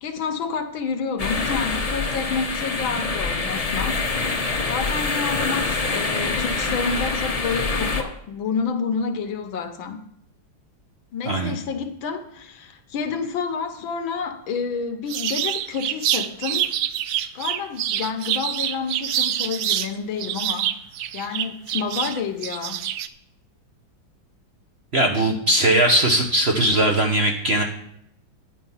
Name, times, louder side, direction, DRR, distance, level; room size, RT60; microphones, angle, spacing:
voice 1, 0.0-4.1 4.7-10.0 11.1-16.7 17.3-20.7 21.1-22.9, left 5 dB, 80° left, 1.8 m, -29 dB
sound 1, 1.2-8.0, left 3 dB, 35° left, 0.6 m, -25 dB
sound 2, 15.1-19.9 20.2-23.1, right 11 dB, 75° right, 0.9 m, -26 dB
voice 2, 24.9-27.6, right 1 dB, 40° right, 1.0 m, -19 dB
10.0 x 7.5 x 5.6 m
omnidirectional pair, 2.1 m